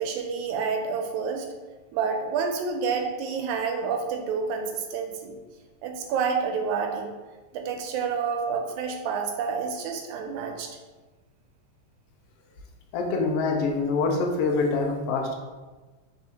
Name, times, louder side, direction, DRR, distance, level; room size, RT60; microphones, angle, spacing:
voice 1, 0.0-1.5 1.9-5.4 5.8-7.1 7.5-10.8, right 5 dB, 85° right, 4 dB, 2.0 m, -29 dB
voice 2, 12.9-15.4, left 3 dB, 80° left, 0 dB, 1.3 m, -25 dB
4.3 x 3.5 x 2.8 m, 1.3 s
omnidirectional pair, 3.3 m